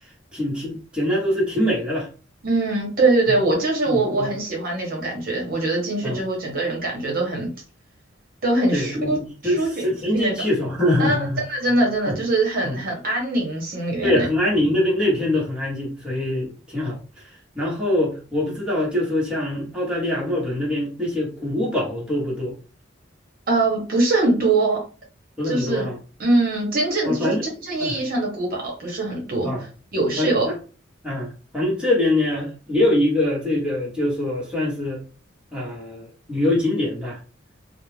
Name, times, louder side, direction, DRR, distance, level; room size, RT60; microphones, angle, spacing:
voice 1, 0.3-2.1 3.3-3.4 3.8-4.3 6.0-6.2 8.7-11.4 11.7-12.2 12.6-12.8 14.0-17.3 17.5-22.6 25.4-26.0 27.0-27.5 27.8-28.0 29.4-29.6 30.2-30.5 31.0-35.0 35.5-37.2, left 1 dB, 5° right, -6 dB, 1.0 m, -24 dB
voice 2, 2.4-7.5 8.4-10.3 11.0-14.3 23.5-24.8 25.4-25.9 26.2-27.4 27.7-29.5 29.9-30.5, right 2 dB, 50° right, -1 dB, 0.8 m, -22 dB
2.4 x 2.0 x 3.2 m, 0.35 s
head